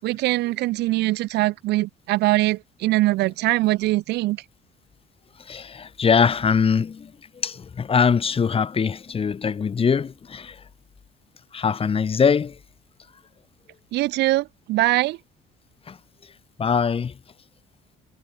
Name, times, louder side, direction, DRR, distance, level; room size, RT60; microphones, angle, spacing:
voice 1, 0.0-4.4 13.9-15.2, right 18 dB, 85° right, 1.6 m, -22 dB
voice 2, 5.5-7.1 7.4-10.5 11.5-12.5 15.9-16.0 16.6-17.1, left 6 dB, 35° left, 3.0 m, -22 dB
cardioid pair, 110°, 17 cm